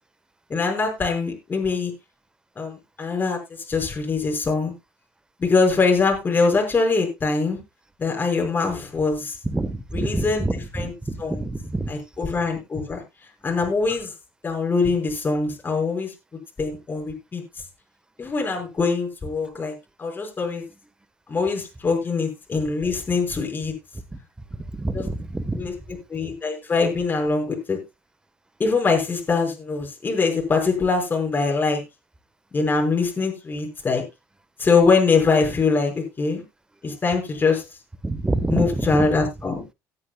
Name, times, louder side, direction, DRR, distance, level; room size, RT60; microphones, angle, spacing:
voice 1, 0.5-1.9 2.6-3.4 3.7-4.7 5.4-7.6 8.0-9.4 9.9-10.5 10.7-10.9 11.2-11.4 11.9-13.0 13.4-14.1 14.4-16.1 16.6-17.4 18.2-19.7 20.0-20.6 21.3-23.7 24.9-25.0 25.6-25.7 26.1-27.8 28.6-31.8 32.5-34.0 34.6-36.4 36.8-37.6 38.5-39.6, left 4 dB, 30° left, 5.5 m, -23 dB
voice 2, 9.4-11.9 24.7-25.7 38.0-39.1, right 2 dB, 10° right, 1.3 m, -27 dB
18.5 x 9.8 x 2.3 m
supercardioid pair, 90°, 7 cm